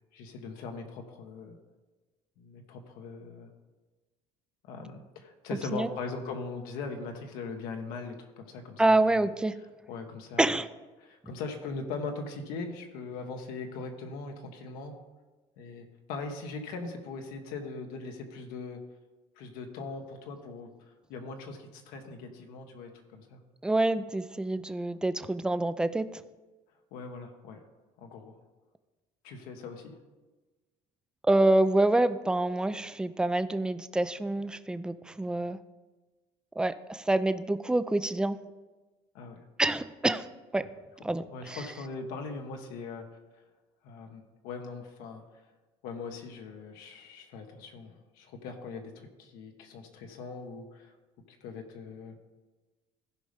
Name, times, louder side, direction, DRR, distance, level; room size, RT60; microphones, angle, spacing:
voice 1, 0.1-1.6 2.4-3.5 4.6-9.3 9.9-10.5 11.0-15.0 15.6-18.8 19.4-20.7 21.1-23.4 26.9-27.6 28.0-28.4 29.2-30.0 39.1-39.4 41.3-43.1 43.8-45.4 45.8-50.9 51.3-52.1, left 4 dB, 85° left, 4 dB, 1.4 m, -40 dB
voice 2, 8.8-9.5 10.4-10.7 23.6-26.2 31.2-35.6 36.6-38.4 39.6-40.3 40.5-40.7 41.0-41.6, right 2 dB, 5° right, 12 dB, 0.4 m, -27 dB
15.5 x 5.3 x 3.5 m, 1.2 s
cardioid pair, 125°, 15 cm